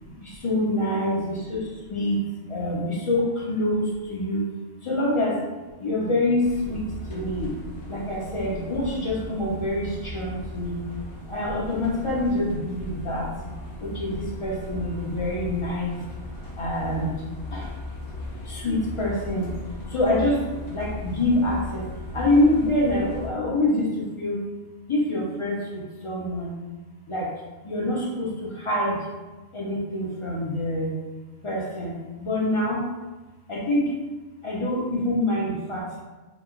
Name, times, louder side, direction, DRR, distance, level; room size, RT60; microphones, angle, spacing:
voice 1, 0.0-4.5 4.8-5.4 5.8-10.8 11.3-13.3 13.8-16.0 16.5-17.3 17.5-17.7 18.4-19.5 19.9-21.9 22.1-24.4 24.9-26.5 27.1-27.3 27.6-29.1 29.5-30.9 31.4-32.9 33.5-34.0 34.4-36.0, left 1 dB, 50° left, -4 dB, 0.4 m, -26 dB
sound 1, 6.4-23.3, left 1 dB, 70° left, 0.9 m, -37 dB
2.9 x 2.1 x 3.6 m, 1.2 s
omnidirectional pair, 1.3 m